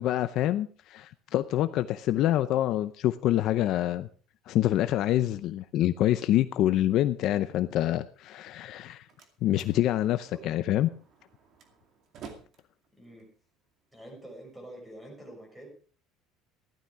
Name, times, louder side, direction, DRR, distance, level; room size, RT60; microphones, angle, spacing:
voice 1, 0.0-4.1 4.5-9.1 9.4-10.9, left 13 dB, 45° left, 11 dB, 0.6 m, -26 dB
Slam, 8.6-14.6, right 6 dB, 40° right, 2.3 m, -53 dB
voice 2, 13.0-13.3 13.9-15.7, right 1 dB, 5° right, 1 dB, 6.0 m, -46 dB
15.0 x 12.0 x 4.8 m, 0.42 s
cardioid pair, 175°, 0 cm